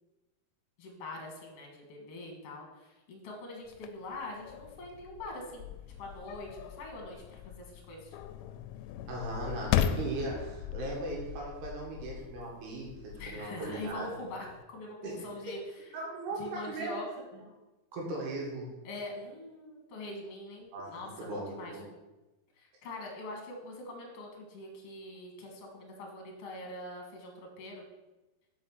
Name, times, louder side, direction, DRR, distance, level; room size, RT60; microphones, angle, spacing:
voice 1, 0.8-5.7 6.0-8.1 13.2-15.6 16.4-17.0 18.8-21.8 22.6-27.8, left 2 dB, 55° left, 0 dB, 1.8 m, -43 dB
sound 1, 3.7-14.6, left 10 dB, 80° left, 2.3 m, -38 dB
voice 2, 9.1-14.2 15.0-15.2 15.9-17.0 17.3-17.4 17.9-18.7 20.7-21.8, right 2 dB, 75° right, -2 dB, 4.0 m, -38 dB
6.3 x 5.9 x 6.2 m, 1.1 s
omnidirectional pair, 4.7 m